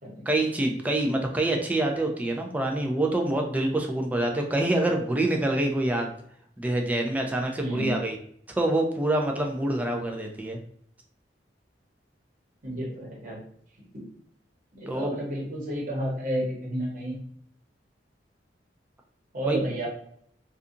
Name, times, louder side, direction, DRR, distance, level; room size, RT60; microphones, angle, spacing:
voice 1, 0.3-6.1 6.6-8.2 8.6-10.6 14.9-15.2 19.5-19.6, right 1 dB, 10° right, 2 dB, 0.3 m, -26 dB
voice 2, 7.6-7.9 12.6-13.4 14.7-17.2 19.3-19.9, right 1 dB, 50° right, -3 dB, 1.0 m, -31 dB
2.6 x 2.4 x 2.5 m, 0.64 s
head